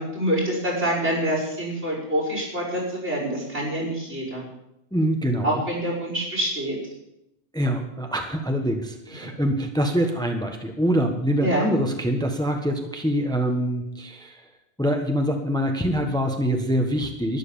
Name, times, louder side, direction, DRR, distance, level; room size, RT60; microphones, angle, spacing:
voice 1, 0.0-4.4 5.4-6.8 11.4-11.7, right 1 dB, 70° right, -2 dB, 5.9 m, -26 dB
voice 2, 4.9-5.6 7.5-14.4 14.8-17.4, equal, 5° left, 4 dB, 1.3 m, -24 dB
12.0 x 11.0 x 7.1 m, 0.85 s
omnidirectional pair, 1.2 m